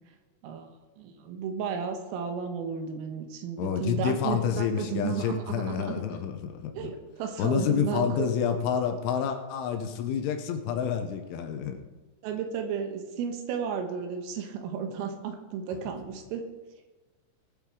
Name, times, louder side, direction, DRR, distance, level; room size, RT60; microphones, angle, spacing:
voice 1, 1.0-6.0 6.8-8.3 12.2-16.5, right 6 dB, 85° right, 6 dB, 3.9 m, -33 dB
voice 2, 3.6-6.9 7.4-11.8, left 7 dB, 75° left, 6 dB, 3.2 m, -28 dB
19.5 x 7.4 x 4.9 m, 1.2 s
omnidirectional pair, 5.9 m